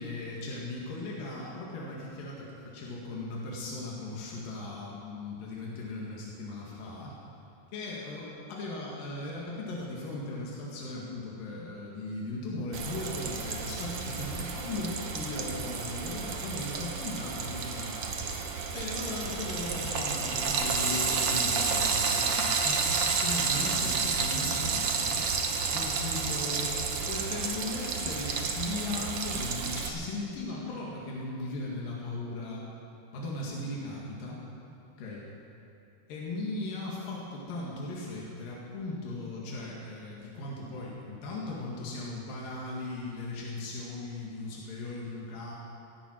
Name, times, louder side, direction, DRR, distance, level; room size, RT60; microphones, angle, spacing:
voice 1, 0.0-7.1 7.7-25.2 25.7-32.6 33.1-34.4 35.0-35.2 36.1-45.5, left 2 dB, 85° left, -4 dB, 3.7 m, -38 dB
Frying (food), 12.7-29.9, right 5 dB, 80° right, 1.0 m, -31 dB
17.0 x 16.0 x 4.6 m, 2.8 s
omnidirectional pair, 3.9 m